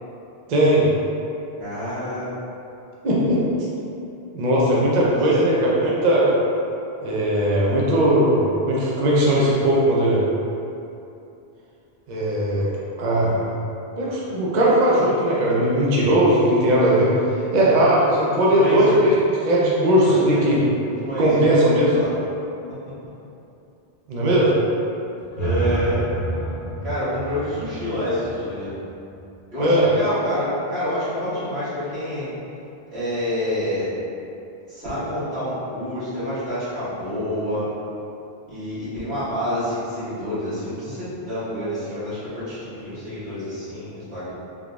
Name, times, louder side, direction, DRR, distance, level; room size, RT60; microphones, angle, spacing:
voice 1, 0.5-0.9 3.0-3.4 4.3-6.3 7.0-10.2 12.1-12.7 13.0-13.4 14.0-17.1 17.5-19.1 19.5-20.6 21.2-21.9 24.1-24.5 29.6-29.9, right 1 dB, 50° right, -6 dB, 0.6 m, -18 dB
voice 2, 1.6-2.3 5.0-5.1 5.5-5.8 18.5-19.0 20.0-20.4 20.8-21.3 21.7-22.1 25.4-26.0 26.8-28.7 29.5-32.3 32.9-33.9 34.7-37.7 38.5-44.3, left 1 dB, 85° right, -14 dB, 1.9 m, -28 dB
sound 1, 25.2-29.3, right 2 dB, 25° left, 1.0 m, -29 dB
3.7 x 3.5 x 2.3 m, 2.7 s
omnidirectional pair, 1.1 m